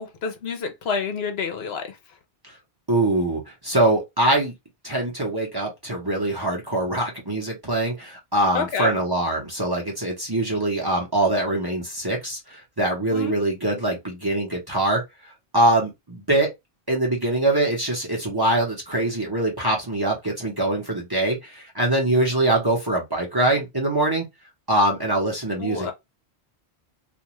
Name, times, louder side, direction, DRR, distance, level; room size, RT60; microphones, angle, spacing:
voice 1, 0.0-1.9 8.5-8.9 13.1-13.3 25.6-25.9, left 5 dB, 70° left, 0.9 m, -28 dB
voice 2, 2.9-4.5 4.8-15.0 15.5-16.5 16.9-24.2 24.7-25.9, right 1 dB, 25° right, 0.8 m, -23 dB
2.5 x 2.3 x 2.9 m
omnidirectional pair, 1.1 m